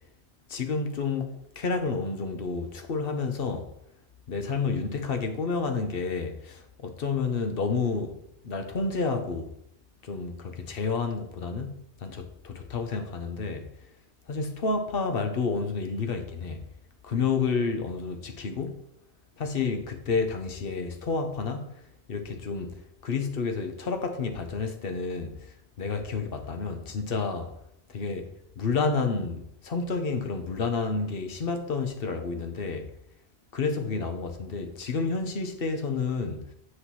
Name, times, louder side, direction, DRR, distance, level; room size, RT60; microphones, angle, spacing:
voice 1, 0.5-3.7 4.3-8.2 8.4-9.5 10.0-13.7 14.3-16.6 17.0-18.8 19.4-21.7 22.1-22.8 23.0-27.5 27.9-28.3 28.6-32.9 33.5-36.5, left 4 dB, 60° left, 1.1 m, -30 dB
7.8 x 6.2 x 3.1 m
omnidirectional pair, 1.1 m